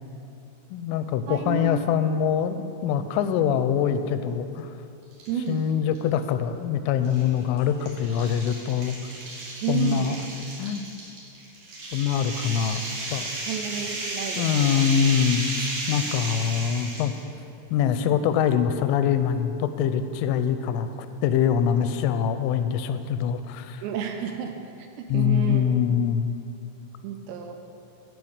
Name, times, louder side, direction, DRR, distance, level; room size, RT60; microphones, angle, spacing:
voice 1, 0.7-4.7 5.5-9.0 9.7-10.2 10.6-10.8 11.9-12.8 13.1-13.3 14.4-17.1 17.7-23.8 25.1-26.3, left 8 dB, 85° left, 10 dB, 3.1 m, -24 dB
voice 2, 1.3-2.0 5.3-5.6 9.6-10.2 13.5-14.8 23.8-24.5 24.8-25.7 27.0-27.6, right 8 dB, 80° right, 5 dB, 2.7 m, -30 dB
sound 1, 5.1-5.5 5.9-6.0 7.0-17.2, right 2 dB, 60° right, 3.9 m, -33 dB
14.0 x 5.2 x 7.9 m, 2.6 s
omnidirectional pair, 5.5 m